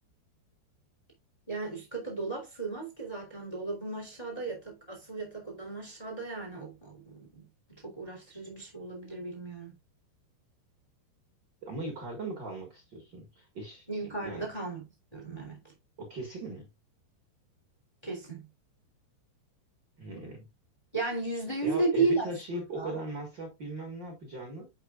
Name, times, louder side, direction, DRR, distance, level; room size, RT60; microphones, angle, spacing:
voice 1, 1.5-9.7 13.9-14.8 15.1-15.6 18.0-18.5 20.9-23.0, right 3 dB, 10° left, 2.0 m, -34 dB
voice 2, 11.6-13.9 14.2-14.4 16.0-16.7 20.0-20.5 21.6-24.7, right 2 dB, 80° right, 1.0 m, -38 dB
10.0 x 4.7 x 2.4 m
omnidirectional pair, 5.1 m